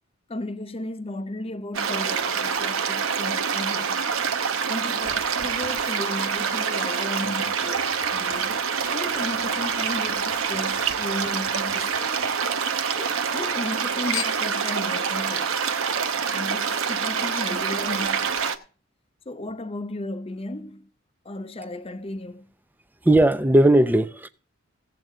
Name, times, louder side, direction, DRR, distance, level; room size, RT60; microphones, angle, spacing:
voice 1, 0.3-4.0 4.7-8.6 8.9-12.2 13.0-15.8 16.3-18.6 19.3-20.9 21.2-22.5, left 1 dB, 25° left, 0.7 m, -35 dB
sound 1, 1.7-18.6, right 6 dB, 65° right, 0.9 m, -26 dB
Chink clink / Liquid, 7.2-12.7 13.1-13.8 14.1-14.6 15.4-15.5, left 9 dB, 65° left, 0.9 m, -41 dB
voice 2, 23.0-24.3, right 1 dB, 10° right, 0.5 m, -17 dB
16.5 x 7.6 x 3.7 m
head